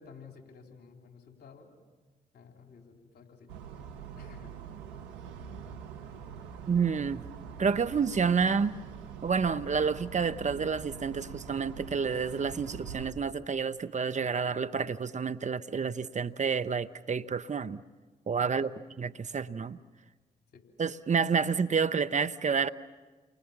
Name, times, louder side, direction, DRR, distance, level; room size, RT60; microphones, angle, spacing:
voice 1, 0.0-1.7 2.3-3.5 4.2-4.6 18.4-18.9 20.5-20.6, left 5 dB, 65° left, 3 dB, 4.0 m, -52 dB
sound 1, 3.5-13.1, right 8 dB, 90° right, 1.1 m, -44 dB
voice 2, 6.7-7.2 7.6-8.7 9.2-17.8 18.3-18.7 19.0-19.8 20.8-22.7, right 5 dB, 45° right, 12 dB, 0.9 m, -29 dB
30.0 x 24.0 x 7.2 m, 1.3 s
hypercardioid pair, 40°, 18 cm